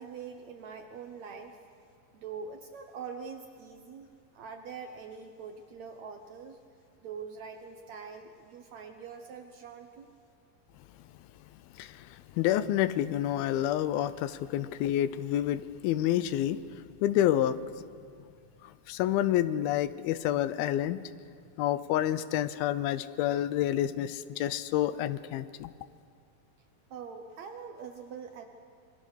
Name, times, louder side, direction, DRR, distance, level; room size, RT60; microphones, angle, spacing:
voice 1, 0.0-1.6 2.1-4.1 4.3-6.6 7.0-10.1 26.9-28.4, right 6 dB, 70° right, 5 dB, 1.8 m, -43 dB
voice 2, 11.8-16.6 17.0-17.6 18.6-21.0 21.6-25.7, left 12 dB, 85° left, 15 dB, 2.5 m, -28 dB
27.5 x 22.5 x 6.5 m, 2.2 s
omnidirectional pair, 4.3 m